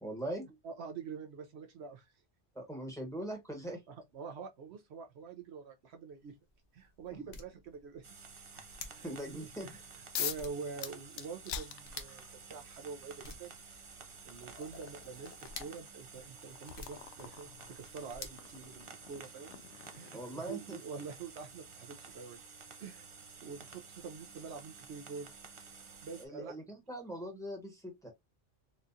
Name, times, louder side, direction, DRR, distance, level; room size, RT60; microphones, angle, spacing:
voice 1, 0.0-0.5 2.5-3.8 9.0-9.7 20.1-20.8 26.2-28.1, right 1 dB, 5° left, 1.1 m, -41 dB
voice 2, 0.6-2.1 3.9-6.4 6.7-8.1 8.9-13.8 14.2-19.5 19.9-22.4 22.8-23.1 23.4-25.7 26.0-26.6, right 5 dB, 70° right, 0.9 m, -46 dB
sound 1, 6.1-19.3, left 4 dB, 55° left, 0.9 m, -54 dB
sound 2, 8.0-26.3, right 5 dB, 45° right, 0.4 m, -52 dB
sound 3, 10.1-10.5 10.8-12.4 13.5-13.6 14.1-20.8, left 9 dB, 80° left, 0.9 m, -44 dB
4.3 x 2.4 x 2.6 m
omnidirectional pair, 1.2 m